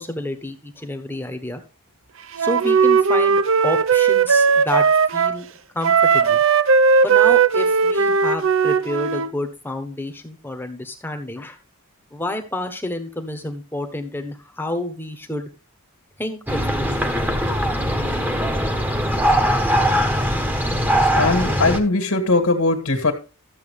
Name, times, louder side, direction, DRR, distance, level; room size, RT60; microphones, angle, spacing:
voice 1, 0.0-1.6 2.4-5.4 5.7-6.4 7.0-11.6 12.1-15.5 16.2-17.2, left 1 dB, 10° left, 1.2 m, -29 dB
Wind instrument woodwind instrument, 2.4-5.4 5.8-9.3, right 5 dB, 60° right, 0.6 m, -17 dB
sound 1, 16.5-21.8, equal, 10° right, 1.3 m, -21 dB
voice 2, 20.7-23.1, left 2 dB, 70° left, 1.9 m, -20 dB
13.0 x 7.5 x 3.5 m
head